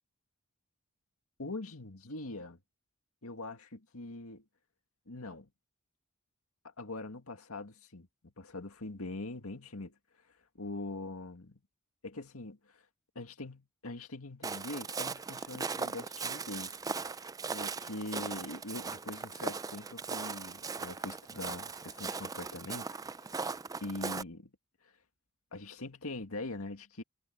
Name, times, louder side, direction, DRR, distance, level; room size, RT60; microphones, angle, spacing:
voice 1, 1.4-2.6 3.2-4.5 5.1-5.5 6.8-8.1 8.4-10.0 10.6-11.6 12.0-12.8 13.2-16.8 17.1-17.2 17.5-23.5 23.8-24.5 24.8-24.9 25.5-27.0, left 2 dB, 85° left, 2.1 m, -43 dB
Walk footsteps, 14.4-24.2, right 4 dB, 15° right, 0.4 m, -39 dB
head